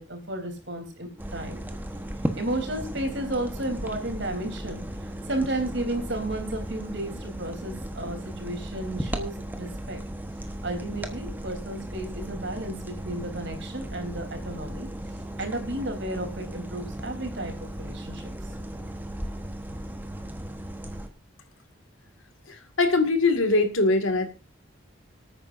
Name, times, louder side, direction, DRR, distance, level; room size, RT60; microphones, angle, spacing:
voice 1, 0.0-1.6 2.4-10.0 10.6-14.9 15.4-18.3, right 1 dB, 65° right, 4 dB, 3.5 m, -33 dB
sound 1, 1.2-21.1, right 1 dB, 10° right, 1.1 m, -36 dB
voice 2, 22.8-24.3, left 3 dB, 90° left, 7 dB, 2.0 m, -21 dB
25.5 x 9.0 x 2.6 m, 0.28 s
head